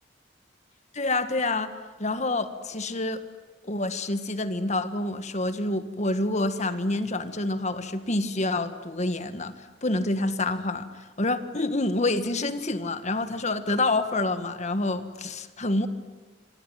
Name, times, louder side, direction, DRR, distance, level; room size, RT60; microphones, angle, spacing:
voice 1, 0.9-1.7 2.0-3.2 3.6-9.6 9.8-10.9 11.2-15.9, left 2 dB, 40° left, 10 dB, 1.7 m, -27 dB
25.5 x 25.0 x 9.3 m, 1.3 s
head